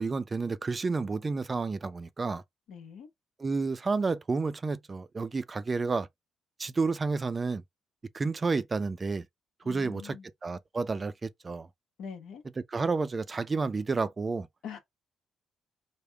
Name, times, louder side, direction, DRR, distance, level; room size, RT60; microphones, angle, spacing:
voice 1, 0.0-2.4 3.4-6.1 6.6-7.6 8.1-9.2 9.7-10.2 10.4-11.7 12.7-14.5, right 4 dB, 30° right, 0.4 m, -30 dB
voice 2, 2.7-3.1 9.6-10.3 12.0-12.4 14.6-14.8, left 7 dB, 80° left, 1.1 m, -43 dB
3.4 x 2.1 x 3.3 m
cardioid pair, 90°, 0 cm